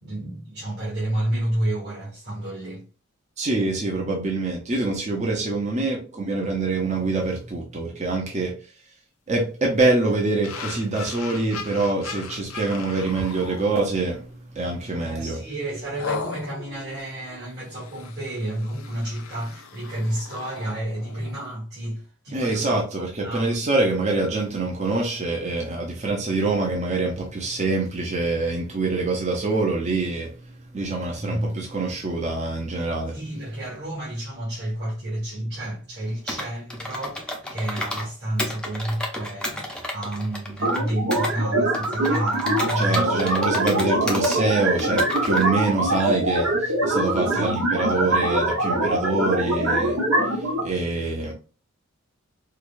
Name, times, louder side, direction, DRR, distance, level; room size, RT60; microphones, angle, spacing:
voice 1, 0.0-2.8 14.8-23.5 31.1-31.6 33.1-43.3 47.3-47.5, right 1 dB, 50° right, 1.8 m, -30 dB
voice 2, 3.4-8.6 9.3-15.4 22.3-33.2 42.7-51.3, right 3 dB, 35° right, 0.7 m, -25 dB
sound 1, 10.4-14.3 14.7-15.0 16.0-21.5, left 5 dB, 80° left, 0.6 m, -38 dB
Computer keyboard, 36.3-38.1 38.4-41.3 41.7-44.4 44.8-45.5, left 1 dB, 5° left, 0.6 m, -32 dB
sound 2, 40.6-50.6, right 1 dB, 75° right, 1.2 m, -23 dB
4.7 x 2.3 x 2.5 m
head